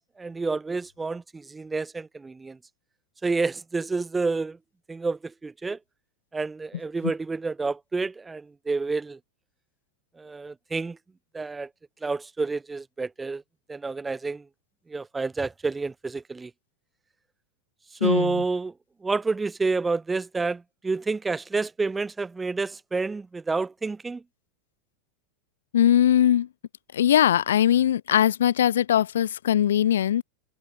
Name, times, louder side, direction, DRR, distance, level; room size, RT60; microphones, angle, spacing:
voice 1, 0.2-2.6 3.2-4.6 4.9-5.8 6.3-9.2 10.2-11.0 11.3-11.7 12.0-13.4 13.7-14.4 14.9-16.5 18.0-18.7 19.0-24.2, right 3 dB, 10° right, 0.8 m, -29 dB
voice 2, 18.0-18.4 25.7-26.5 26.9-30.2, left 10 dB, 60° left, 1.0 m, -21 dB
figure-of-eight pair, 90°, 0 cm